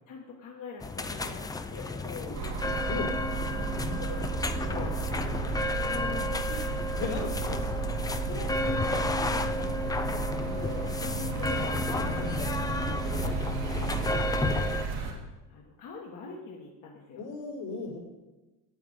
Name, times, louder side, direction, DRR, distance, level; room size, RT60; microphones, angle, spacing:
voice 1, 0.1-2.5 3.1-4.9 5.9-7.6 7.9-9.5 10.4-12.5 13.2-13.4 13.8-14.5 15.5-17.2, left 4 dB, 50° left, -1 dB, 1.5 m, -43 dB
sound 1, 0.8-14.9, left 2 dB, 10° left, 0.4 m, -32 dB
sound 2, 2.3-15.1, right 4 dB, 80° right, 2.4 m, -33 dB
voice 2, 4.8-6.0 6.9-7.9 9.5-9.7 11.9-12.5 12.8-13.0 17.2-18.0, left 3 dB, 80° left, -4 dB, 4.0 m, -39 dB
8.7 x 8.6 x 5.0 m, 1.1 s
supercardioid pair, 110°, 40 cm